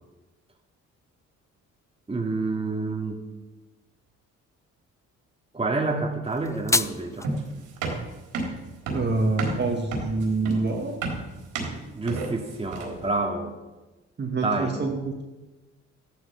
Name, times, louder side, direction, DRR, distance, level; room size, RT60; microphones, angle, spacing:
voice 1, 2.1-3.2 5.5-7.3 11.9-13.6 14.4-14.7, right 3 dB, 20° right, 1 dB, 2.4 m, -28 dB
sound 1, 6.2-7.3, left 2 dB, 10° left, 0.5 m, -27 dB
sound 2, 7.2-13.1, right 3 dB, 85° right, 4.0 m, -31 dB
voice 2, 8.9-10.9 14.2-15.2, right 3 dB, 35° right, 1 dB, 2.2 m, -26 dB
14.0 x 12.0 x 5.8 m, 1.1 s
cardioid pair, 90°, 30 cm